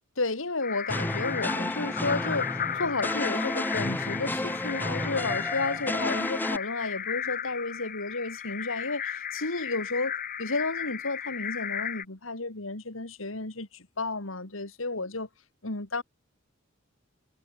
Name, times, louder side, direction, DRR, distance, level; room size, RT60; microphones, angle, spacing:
voice 1, 0.2-15.3 15.6-16.0, left 3 dB, 80° left, 2.7 m, -32 dB
sound 1, 0.6-12.0, left 9 dB, 45° left, 1.9 m, -35 dB
sound 2, 0.9-6.6, left 1 dB, 10° left, 1.5 m, -31 dB
head